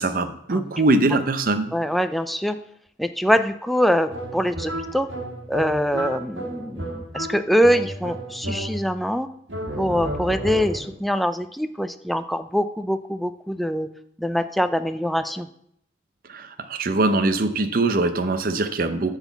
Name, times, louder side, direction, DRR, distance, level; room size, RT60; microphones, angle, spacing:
voice 1, 0.0-1.7 16.3-19.2, right 2 dB, 50° right, 9 dB, 0.6 m, -22 dB
voice 2, 1.7-2.6 3.0-5.1 5.5-9.3 9.8-13.9 14.2-15.5, equal, ahead, 9 dB, 0.3 m, -23 dB
sound 1, 4.1-9.1 9.5-11.0, right 1 dB, 80° right, 1.7 m, -32 dB
10.5 x 4.1 x 7.1 m, 0.71 s
head